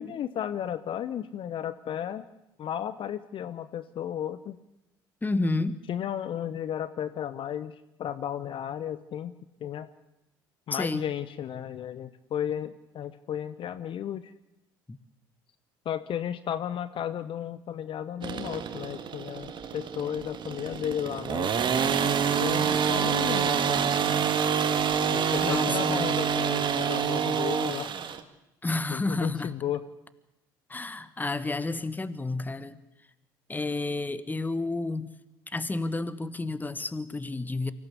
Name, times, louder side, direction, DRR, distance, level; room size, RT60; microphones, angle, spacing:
voice 1, 0.0-2.3 2.6-4.6 5.9-9.3 9.6-9.9 10.7-14.3 15.8-21.6 22.4-23.9 25.1-28.0 28.9-29.9, left 10 dB, 50° left, 14 dB, 0.9 m, -34 dB
voice 2, 5.2-5.8 10.7-11.1 14.9-15.0 25.4-26.1 28.6-29.5 30.7-32.8 33.5-35.1 35.5-37.7, left 2 dB, 15° left, 14 dB, 1.5 m, -30 dB
sound 1, 18.2-28.2, right 7 dB, 45° right, 1.9 m, -27 dB
24.5 x 16.0 x 8.3 m, 0.92 s
hypercardioid pair, 60°, 12 cm